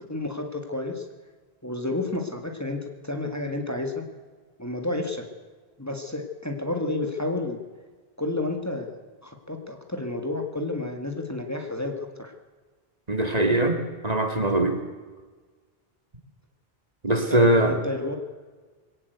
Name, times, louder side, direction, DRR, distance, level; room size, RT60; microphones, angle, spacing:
voice 1, 0.1-1.1 1.6-4.0 4.6-5.3 5.8-7.6 8.2-8.9 9.2-12.3 17.3-18.2, left 2 dB, 15° left, 4 dB, 2.0 m, -30 dB
voice 2, 13.1-13.8 14.0-14.8 17.0-17.8, right 1 dB, 40° right, 6 dB, 2.4 m, -21 dB
22.0 x 17.5 x 8.1 m, 1.4 s
omnidirectional pair, 1.0 m